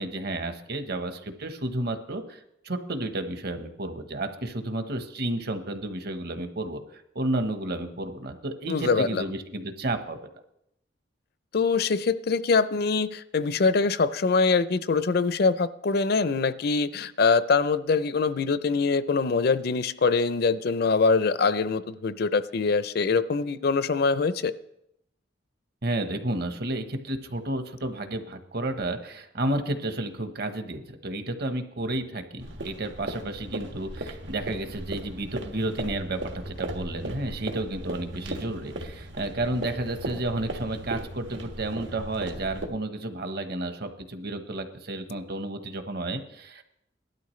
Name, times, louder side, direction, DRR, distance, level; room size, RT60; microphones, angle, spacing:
voice 1, 0.0-10.2 25.8-46.6, right 2 dB, 60° right, 8 dB, 1.1 m, -31 dB
voice 2, 8.7-9.2 11.5-24.5, left 4 dB, 60° left, 14 dB, 0.5 m, -24 dB
sound 1, 32.4-42.7, right 1 dB, 85° right, 1.6 m, -37 dB
18.0 x 12.0 x 3.2 m, 0.80 s
head